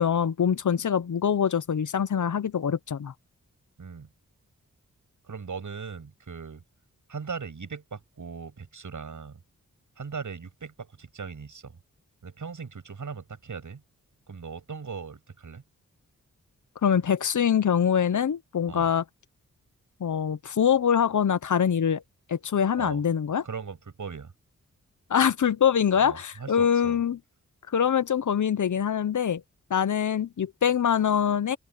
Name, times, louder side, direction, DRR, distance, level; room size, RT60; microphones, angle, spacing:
voice 1, 0.0-3.1 16.8-19.0 20.0-22.0 22.3-23.4 25.1-27.2 27.7-29.4 29.7-31.6, left 8 dB, 65° left, 0.9 m, -24 dB
voice 2, 5.2-6.6 7.1-9.4 10.0-11.8 12.2-13.8 14.3-15.6 18.7-18.9 22.8-23.0 23.4-24.3 25.9-27.0, right 5 dB, 65° right, 7.9 m, -39 dB
open air
cardioid pair, 50°, 32 cm